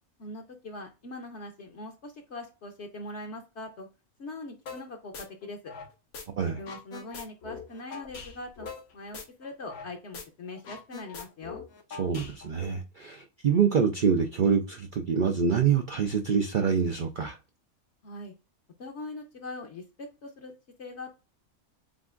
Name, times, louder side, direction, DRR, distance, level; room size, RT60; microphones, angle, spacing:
voice 1, 0.2-3.9 4.2-5.7 6.4-8.7 8.9-11.6 18.0-18.3 18.8-20.5 20.8-21.1, left 2 dB, 60° left, 1.0 m, -41 dB
sound 1, 4.7-4.8 5.1-6.2 6.5-9.9 10.1-10.2 10.5-12.6, left 5 dB, 80° left, 1.5 m, -42 dB
voice 2, 12.0-17.4, right 6 dB, 70° right, 0.4 m, -26 dB
7.4 x 2.5 x 2.4 m
omnidirectional pair, 1.5 m